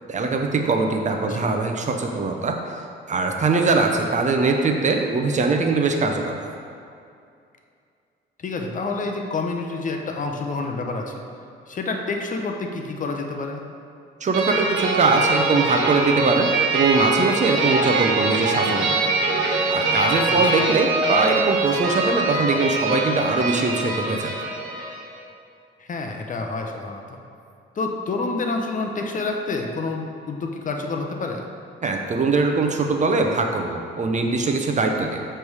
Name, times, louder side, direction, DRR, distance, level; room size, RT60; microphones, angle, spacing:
voice 1, 0.1-2.6 3.1-6.5 14.2-19.0 19.7-24.3 31.8-35.3, right 3 dB, 35° right, 3 dB, 0.6 m, -22 dB
voice 2, 8.4-11.1 11.7-13.6 20.3-20.4 25.8-27.0 27.8-31.4, left 3 dB, 40° left, 3 dB, 0.7 m, -28 dB
sound 1, 14.3-25.1, right 3 dB, 80° right, 1.1 m, -23 dB
7.0 x 3.3 x 4.7 m, 2.4 s
cardioid pair, 90°, 20 cm